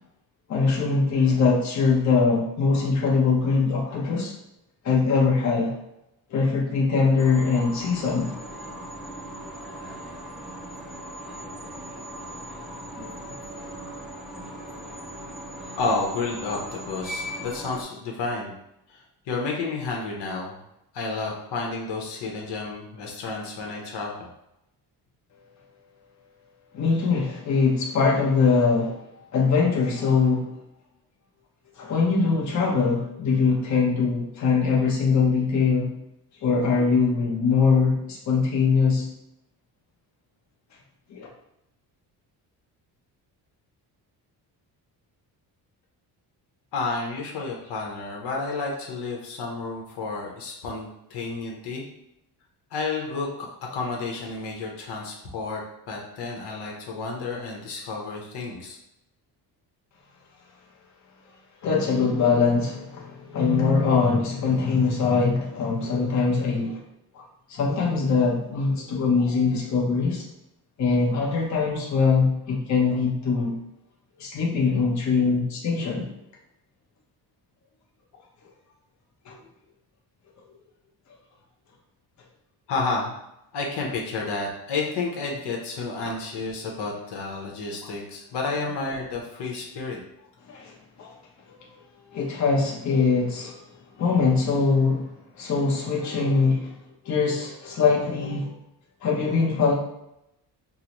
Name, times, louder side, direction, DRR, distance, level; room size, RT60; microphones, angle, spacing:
voice 1, 0.5-4.3 4.8-5.7 6.3-8.3 13.0-13.1 26.7-29.0 29.3-30.5 31.8-36.0 36.4-39.1 41.1-41.3 61.6-66.8 67.1-67.2 67.5-70.2 70.8-73.6 74.2-76.1 79.3-79.4 86.0-86.1 90.5-91.1 92.1-95.1 95.4-96.7 97.0-98.5 99.0-99.7, left 4 dB, 45° left, -3 dB, 0.8 m, -22 dB
sound 1, 7.2-17.8, right 1 dB, ahead, 0.4 m, -38 dB
voice 2, 15.8-18.5 18.9-20.6 20.9-24.3 46.7-51.8 52.7-53.3 53.7-55.6 55.9-58.8 82.7-83.1 83.5-90.0, left 3 dB, 80° left, -1 dB, 0.8 m, -31 dB
3.8 x 2.1 x 2.9 m, 0.84 s
cardioid pair, 120°, 40 cm